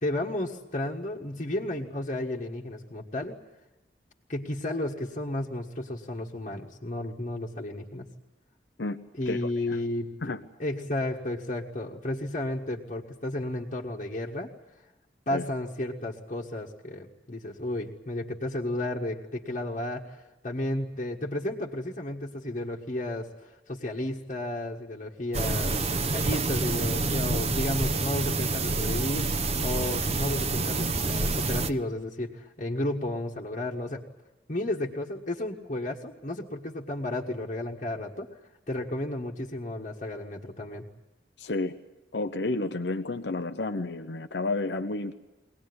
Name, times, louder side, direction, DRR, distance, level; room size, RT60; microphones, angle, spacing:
voice 1, 0.0-3.4 4.3-8.1 9.1-10.3 10.6-14.5 15.3-34.0 34.5-38.3 38.7-40.8, left 1 dB, 45° left, -3 dB, 1.7 m, -33 dB
sound 1, 25.3-31.7, right 3 dB, 40° right, 0.9 m, -27 dB
voice 2, 41.4-41.7 42.1-45.1, left 2 dB, 75° left, 7 dB, 0.9 m, -30 dB
23.0 x 18.5 x 9.6 m, 1.0 s
head